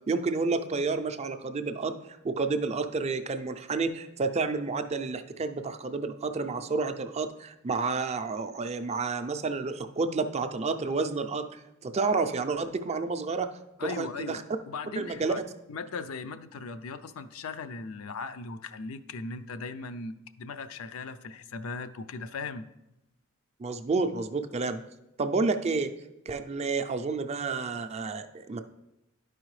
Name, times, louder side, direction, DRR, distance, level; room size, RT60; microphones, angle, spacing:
voice 1, 0.1-1.9 2.2-13.5 13.8-14.4 15.0-15.3 23.6-24.8 25.2-25.9 26.3-28.6, right 4 dB, 30° right, 9 dB, 0.4 m, -30 dB
voice 2, 13.8-15.4 15.7-22.7, left 4 dB, 80° left, 10 dB, 0.5 m, -38 dB
11.5 x 4.8 x 3.1 m, 0.90 s
head